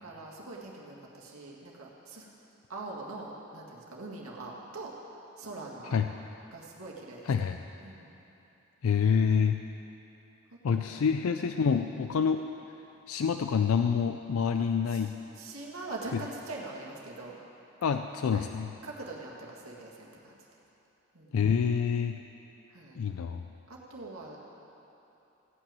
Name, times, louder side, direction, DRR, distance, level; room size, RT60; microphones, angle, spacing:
voice 1, 0.0-2.3 2.7-4.9 5.4-6.2 6.5-7.3 7.8-8.1 10.7-11.1 11.6-11.8 14.9-15.0 15.4-17.4 18.3-18.5 18.8-20.5 21.1-21.3 22.7-23.0 23.7-24.4, right 2 dB, 85° right, -3 dB, 1.8 m, -43 dB
voice 2, 7.3-7.6 8.8-9.6 10.6-12.4 13.1-15.1 16.1-16.2 17.8-18.7 21.3-22.2 23.0-23.4, left 6 dB, 80° left, 7 dB, 0.4 m, -27 dB
16.0 x 6.1 x 8.8 m, 3.0 s
head